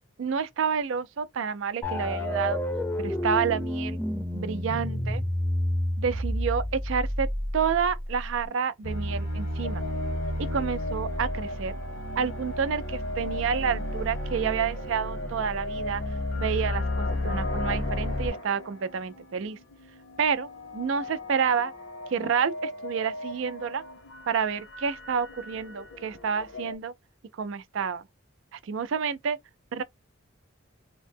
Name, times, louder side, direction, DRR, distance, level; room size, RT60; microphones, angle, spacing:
voice 1, 0.2-2.6 3.0-4.0 4.3-5.2 6.0-9.9 10.4-11.7 12.2-16.0 16.3-19.6 20.2-21.7 22.1-23.8 24.3-26.9 27.4-28.0 28.5-29.4 29.7-29.8, right 6 dB, 70° right, 0.4 m, -29 dB
sound 1, 1.8-8.5, left 1 dB, 10° left, 0.6 m, -30 dB
sound 2, 8.8-18.3, left 1 dB, 80° left, 1.0 m, -32 dB
sound 3, 9.6-26.7, left 1 dB, 60° left, 0.8 m, -39 dB
2.8 x 2.1 x 3.3 m
head